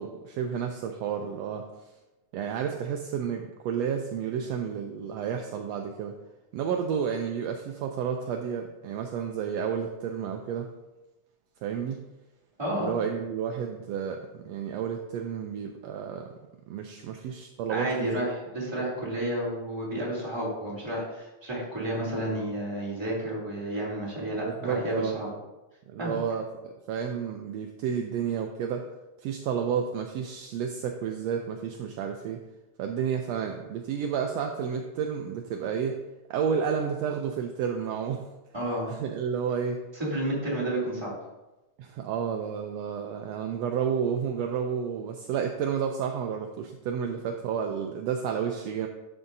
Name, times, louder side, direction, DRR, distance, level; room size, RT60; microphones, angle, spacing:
voice 1, 0.0-1.7 2.3-6.2 6.5-10.7 11.6-12.0 12.8-16.3 16.7-18.1 24.4-25.2 25.9-28.9 29.2-32.4 32.8-36.0 36.3-38.2 38.9-39.8 41.8-48.9, right 7 dB, 80° right, 4 dB, 1.5 m, -31 dB
voice 2, 12.6-12.9 17.7-25.3 26.0-26.2 38.5-38.9 39.9-41.1, right 1 dB, 10° right, -6 dB, 2.3 m, -31 dB
11.0 x 6.9 x 2.7 m, 1.0 s
omnidirectional pair, 3.5 m